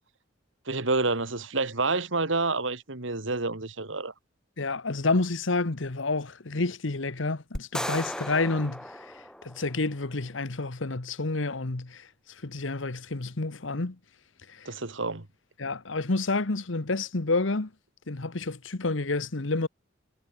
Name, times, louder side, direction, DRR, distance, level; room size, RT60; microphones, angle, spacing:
voice 1, 0.7-4.1 14.7-15.3, right 3 dB, 75° right, 2.3 m, -28 dB
voice 2, 4.6-8.8 9.4-12.0 12.4-14.0 14.6-14.7 15.6-17.7 18.1-19.7, left 3 dB, 80° left, 1.3 m, -29 dB
sound 1, 7.6-9.9, left 1 dB, 5° left, 3.1 m, -36 dB
head